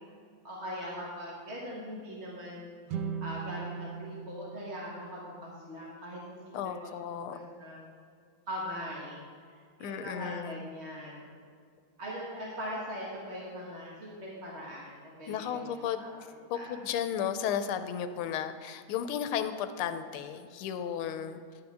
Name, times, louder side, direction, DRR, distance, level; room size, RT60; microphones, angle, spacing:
voice 1, 0.4-2.7 3.2-6.6 6.8-7.9 8.5-9.2 9.8-11.4 12.0-15.6 16.0-16.2 16.5-16.8, equal, 35° right, -5 dB, 1.7 m, -41 dB
sound 1, 2.9-6.1, right 6 dB, 75° right, 1.0 m, -40 dB
voice 2, 6.5-7.3 9.8-10.7 15.3-16.0 16.5-21.4, left 8 dB, 90° left, 10 dB, 1.5 m, -34 dB
11.0 x 8.8 x 3.5 m, 2.2 s
omnidirectional pair, 2.3 m